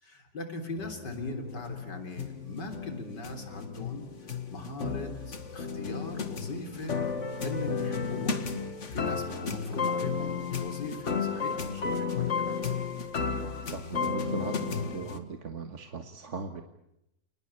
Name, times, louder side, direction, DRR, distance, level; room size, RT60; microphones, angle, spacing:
voice 1, 0.0-7.0 7.4-8.4 8.9-12.6, left 2 dB, 85° left, 6 dB, 4.3 m, -40 dB
sound 1, 0.8-15.2, left 5 dB, 45° left, 2.0 m, -33 dB
voice 2, 13.4-16.6, right 5 dB, 45° right, 6 dB, 1.7 m, -39 dB
29.5 x 20.0 x 8.6 m, 0.84 s
omnidirectional pair, 1.8 m